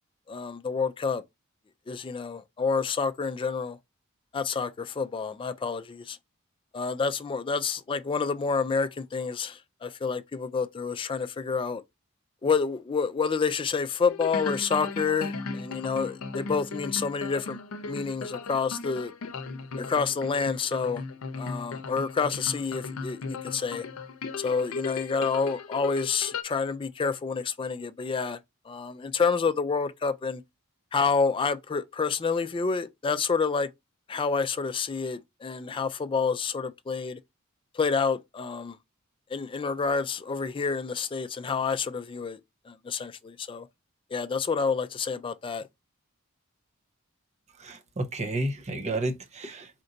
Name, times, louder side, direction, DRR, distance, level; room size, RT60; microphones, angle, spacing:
voice 1, 0.3-1.2 1.9-3.8 4.3-6.2 6.7-11.8 12.4-17.6 17.9-19.1 19.8-21.0 21.4-23.8 24.4-28.4 28.7-30.4 30.9-33.7 34.1-37.2 37.7-38.8 39.3-42.4 42.7-43.7 44.1-45.7, left 5 dB, 25° left, 0.3 m, -28 dB
sound 1, 14.1-26.4, left 4 dB, 80° left, 0.6 m, -36 dB
voice 2, 47.6-49.7, right 2 dB, 30° right, 0.7 m, -31 dB
4.3 x 2.6 x 3.8 m
head